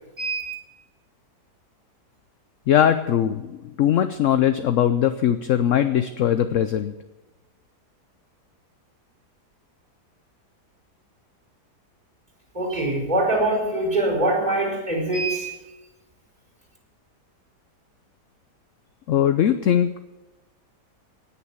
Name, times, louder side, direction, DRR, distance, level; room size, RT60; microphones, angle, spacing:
voice 1, 0.2-0.5 12.5-15.5, right 2 dB, 25° right, -2 dB, 4.6 m, -23 dB
voice 2, 2.7-6.9 19.1-20.0, left 10 dB, 65° left, 10 dB, 0.8 m, -20 dB
18.0 x 6.9 x 7.3 m, 1.1 s
omnidirectional pair, 1.8 m